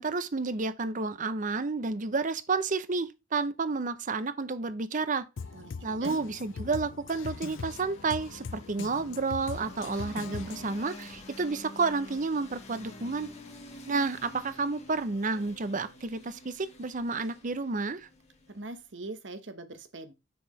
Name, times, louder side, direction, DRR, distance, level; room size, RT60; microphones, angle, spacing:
voice 1, 0.0-5.2 5.8-13.3 13.9-18.1, right 4 dB, 40° right, 0.7 m, -31 dB
Drum kit, 5.4-10.8, left 5 dB, 80° left, 0.5 m, -41 dB
voice 2, 5.5-6.2 18.5-20.1, right 2 dB, 65° right, 1.1 m, -42 dB
sound 1, 7.1-18.9, left 1 dB, 35° left, 1.7 m, -49 dB
6.9 x 5.9 x 3.2 m
head